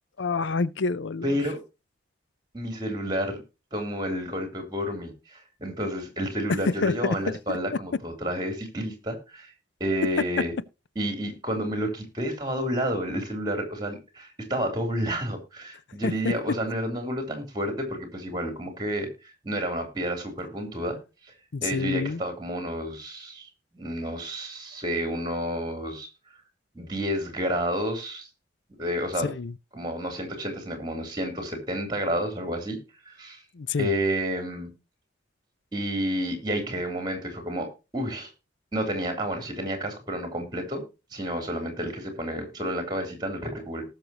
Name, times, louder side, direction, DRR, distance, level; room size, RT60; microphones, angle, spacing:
voice 1, 0.2-1.4 6.8-7.2 7.5-7.6 16.0-16.3 21.5-22.2 29.2-29.5 33.5-33.9, left 4 dB, 75° left, 0.5 m, -28 dB
voice 2, 1.2-1.6 2.5-3.4 3.7-9.5 9.8-10.5 10.9-21.0 21.2-21.3 21.6-26.1 26.7-28.3 28.8-29.3 29.7-32.8 33.0-33.4 33.8-34.7 35.7-37.7 37.9-38.3 38.7-40.8 41.1-43.9, equal, 20° right, 3.2 m, -30 dB
18.5 x 6.7 x 2.9 m
head